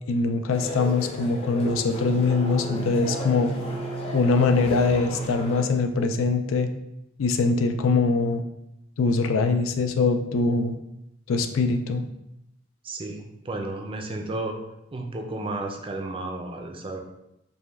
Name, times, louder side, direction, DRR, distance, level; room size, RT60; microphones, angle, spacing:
voice 1, 0.1-3.5 4.1-6.7 7.2-8.4 9.0-10.8 11.3-12.1, left 4 dB, 85° left, 7 dB, 0.4 m, -23 dB
sound 1, 0.5-5.6, left 2 dB, 30° left, 0.6 m, -35 dB
sound 2, 1.6-6.8, right 5 dB, 90° right, 0.7 m, -35 dB
voice 2, 12.8-14.6 14.9-17.0, right 2 dB, 25° right, 3 dB, 0.5 m, -32 dB
5.1 x 2.2 x 3.4 m, 0.85 s
head